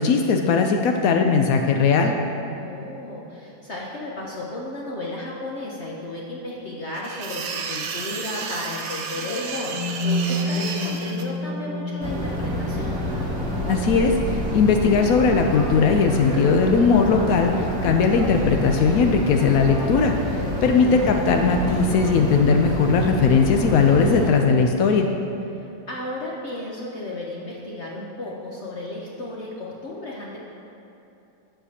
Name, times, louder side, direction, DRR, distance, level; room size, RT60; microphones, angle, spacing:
voice 1, 0.0-2.1 13.7-25.1, left 5 dB, 90° left, 3 dB, 0.7 m, -19 dB
voice 2, 2.6-13.1 20.7-21.0 25.5-30.4, left 1 dB, 55° left, -4 dB, 0.7 m, -34 dB
sound 1, 6.9-11.2, right 5 dB, 70° right, 1.1 m, -32 dB
sound 2, 9.2-17.2, left 1 dB, 75° left, 1.2 m, -31 dB
sound 3, 12.0-24.3, equal, 35° right, 1.1 m, -27 dB
12.0 x 7.9 x 2.8 m, 2.8 s
omnidirectional pair, 2.1 m